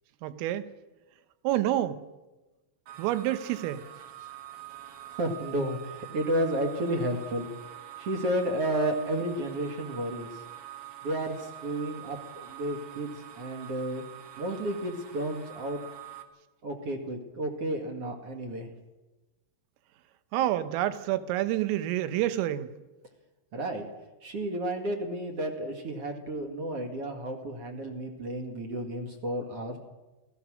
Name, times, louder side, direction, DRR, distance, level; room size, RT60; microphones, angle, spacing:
voice 1, 0.2-0.7 1.5-2.0 3.0-3.9 20.3-22.7, right 13 dB, 80° right, 12 dB, 3.7 m, -28 dB
sound 1, 2.9-16.2, right 13 dB, 65° right, 3.5 m, -45 dB
voice 2, 5.1-7.5 8.0-10.3 11.0-14.0 14.4-15.8 16.6-18.7 23.5-23.9 24.2-29.8, right 1 dB, 50° right, 4 dB, 1.9 m, -32 dB
27.5 x 19.0 x 6.4 m, 1.1 s
omnidirectional pair, 5.9 m